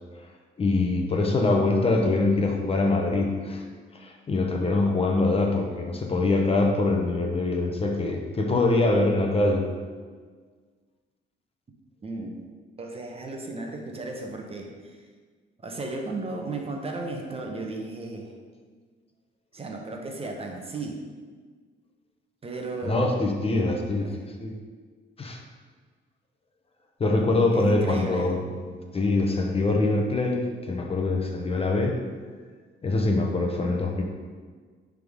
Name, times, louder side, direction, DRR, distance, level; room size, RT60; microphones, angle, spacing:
voice 1, 0.6-3.7 3.9-9.6 22.8-24.1 24.4-24.5 25.2-25.4 27.0-32.0 32.8-34.0, left 2 dB, 30° left, 2 dB, 0.9 m, -24 dB
voice 2, 12.0-12.3 12.8-15.0 15.6-18.4 19.5-21.0 22.4-23.2 24.0-24.2 27.5-28.4, right 2 dB, 30° right, 1 dB, 1.0 m, -34 dB
9.9 x 3.7 x 3.6 m, 1.5 s
cardioid pair, 105°, 20 cm